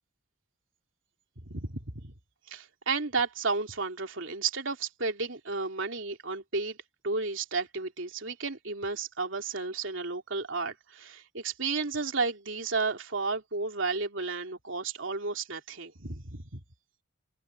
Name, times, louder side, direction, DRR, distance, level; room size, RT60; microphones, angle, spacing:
voice 1, 1.4-2.1 2.5-6.8 7.0-16.6, right 4 dB, 80° right, 2.9 m, -32 dB
open air
head